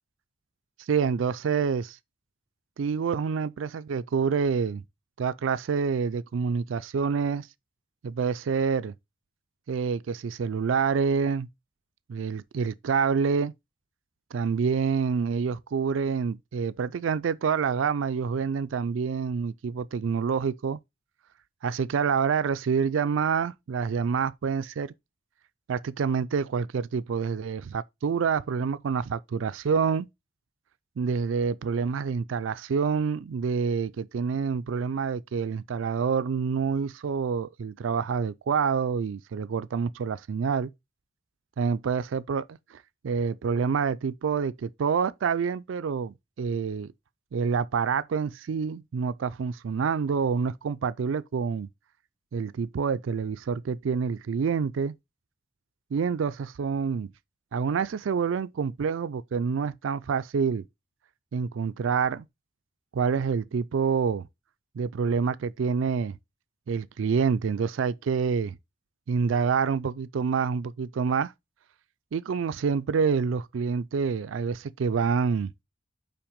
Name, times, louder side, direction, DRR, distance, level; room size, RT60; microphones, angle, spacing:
voice 1, 0.9-2.0 2.8-4.8 5.2-7.5 8.0-8.9 9.7-11.5 12.1-13.5 14.3-20.8 21.6-24.9 25.7-30.1 31.0-40.7 41.6-42.4 42.7-46.9 47.3-51.7 52.3-54.9 55.9-57.1 57.5-60.6 61.3-62.3 62.9-64.3 64.8-66.2 66.7-68.6 69.1-71.3 72.1-75.5, right 6 dB, 85° right, 0.4 m, -27 dB
5.9 x 4.6 x 5.0 m
head